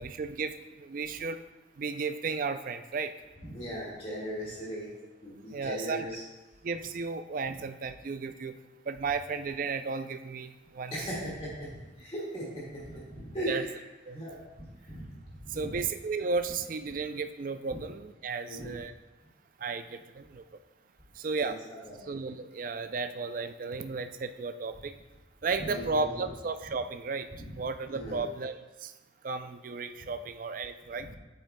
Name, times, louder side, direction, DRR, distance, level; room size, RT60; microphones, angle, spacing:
voice 1, 0.0-1.4 1.8-3.1 5.5-6.1 6.6-8.6 8.9-10.9 13.5-13.7 14.1-14.2 15.5-18.9 19.6-20.4 21.2-21.6 22.1-25.0 25.4-27.3 27.5-28.9 29.2-31.1, right 4 dB, 45° right, 9 dB, 0.4 m, -34 dB
voice 2, 3.5-4.9 5.2-6.2 10.9-13.8 14.1-15.0 15.5-15.7 17.7-17.8 18.5-18.7 21.4-21.5 21.9-22.1 25.6-26.3 27.4-27.5 27.9-28.2 31.0-31.1, equal, 30° left, -6 dB, 1.8 m, -38 dB
8.6 x 8.3 x 2.2 m, 1.1 s
head